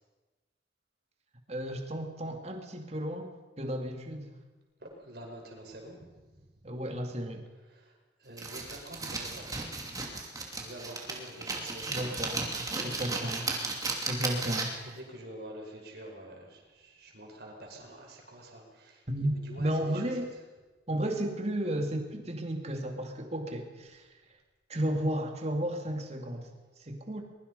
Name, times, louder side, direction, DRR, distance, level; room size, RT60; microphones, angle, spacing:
voice 1, 1.5-3.3 3.6-4.3 6.6-7.4 11.9-12.5 12.8-13.5 14.0-14.7 19.1-19.3 19.6-20.3 20.9-24.2 24.7-26.5 26.8-27.2, right 1 dB, 35° right, 4 dB, 2.7 m, -33 dB
voice 2, 4.8-6.0 6.4-6.5 7.7-7.9 8.2-9.7 10.5-12.2 12.6-13.1 14.8-20.0, right 1 dB, 60° right, 1 dB, 5.4 m, -47 dB
sound 1, 8.4-14.9, right 3 dB, 20° right, 2.7 m, -35 dB
23.0 x 22.0 x 5.6 m, 1.2 s
head